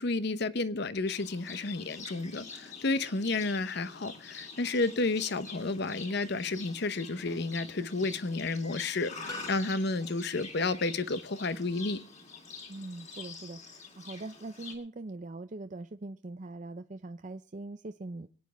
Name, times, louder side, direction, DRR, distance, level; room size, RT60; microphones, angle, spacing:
voice 1, 0.0-12.0, left 3 dB, 60° left, 0.9 m, -31 dB
Livestock farm animals working animals, 1.1-14.7, left 4 dB, 40° left, 3.1 m, -46 dB
sound 1, 9.3-10.4, equal, 20° left, 1.2 m, -46 dB
voice 2, 12.7-18.3, right 2 dB, 40° right, 0.5 m, -42 dB
25.5 x 9.5 x 3.4 m
head